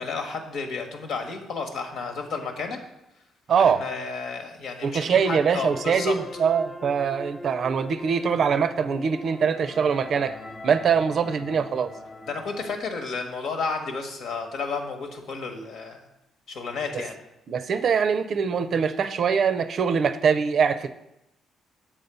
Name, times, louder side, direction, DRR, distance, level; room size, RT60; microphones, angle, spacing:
voice 1, 0.0-2.8 3.6-6.2 12.2-16.0 16.5-17.2, left 4 dB, 75° left, 4 dB, 1.3 m, -32 dB
voice 2, 3.5-3.8 4.8-10.4 10.6-11.9 17.5-20.9, right 6 dB, 60° right, 11 dB, 0.5 m, -23 dB
sound 1, 5.7-12.8, left 2 dB, 25° left, 0.7 m, -41 dB
7.4 x 4.1 x 6.8 m, 0.86 s
cardioid pair, 90°, 0 cm